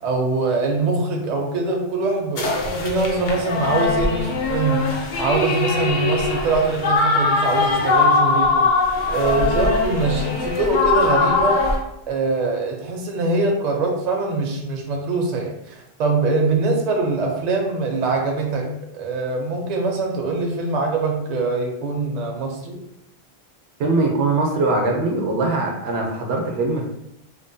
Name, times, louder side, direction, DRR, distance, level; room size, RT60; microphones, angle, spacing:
voice 1, 0.0-2.5 2.8-4.9 5.2-8.7 9.1-11.6 12.1-22.8, right 3 dB, 55° right, 1 dB, 0.5 m, -23 dB
sound 1, 2.4-11.8, left 3 dB, 55° left, 0.6 m, -21 dB
voice 2, 23.8-26.8, right 2 dB, 80° right, 1 dB, 0.8 m, -21 dB
2.9 x 2.1 x 2.6 m, 0.82 s
omnidirectional pair, 1.1 m